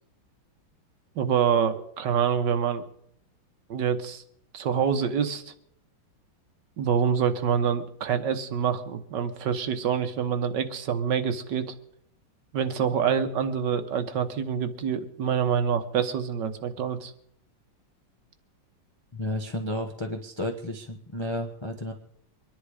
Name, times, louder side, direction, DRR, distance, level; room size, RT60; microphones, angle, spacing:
voice 1, 1.2-2.8 3.7-4.2 4.5-5.5 6.8-11.7 12.5-17.1, right 7 dB, 60° right, 9 dB, 1.6 m, -26 dB
voice 2, 19.1-21.9, left 1 dB, 20° left, 3 dB, 0.8 m, -32 dB
24.0 x 10.5 x 5.0 m, 0.71 s
omnidirectional pair, 2.3 m